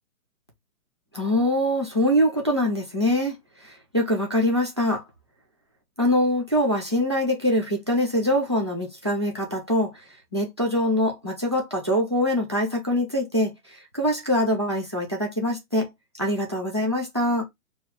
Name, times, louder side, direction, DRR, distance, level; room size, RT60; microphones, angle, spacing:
voice 1, 1.1-3.4 3.6-5.0 6.0-9.9 10.3-15.9 16.2-17.5, left 1 dB, 20° right, 0.5 m, -24 dB
4.6 x 2.3 x 3.5 m
hypercardioid pair, 170°, 44 cm